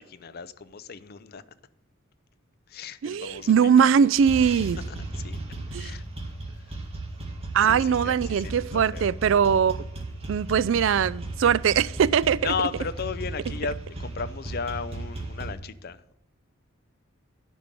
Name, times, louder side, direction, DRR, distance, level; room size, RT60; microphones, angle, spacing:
voice 1, 0.0-1.4 2.7-4.1 4.9-5.0 5.2-5.4 5.7-6.0 7.6-9.1 12.4-16.1, left 5 dB, 45° left, 0.5 m, -35 dB
voice 2, 3.0-4.8 5.7-5.9 7.5-9.9 10.3-12.5, right 7 dB, 60° right, 0.3 m, -21 dB
sound 1, 3.3-3.9 4.2-15.5, right 2 dB, 30° right, 1.8 m, -35 dB
10.0 x 5.2 x 7.4 m
head